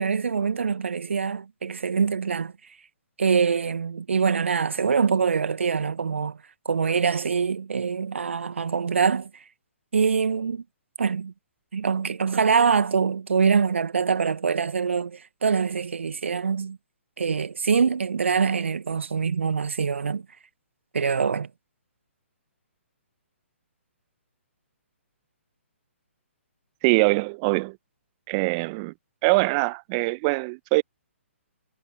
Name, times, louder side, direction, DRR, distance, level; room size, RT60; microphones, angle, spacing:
voice 1, 0.0-2.5 3.2-6.4 6.6-9.3 9.9-10.6 11.0-11.3 11.7-16.8 17.2-20.2 20.9-21.5, right 6 dB, 65° right, 1.3 m, -24 dB
voice 2, 26.8-27.8 28.3-28.9 29.2-30.8, right 29 dB, 30° right, 1.1 m, -23 dB
figure-of-eight pair, 130°, 7 cm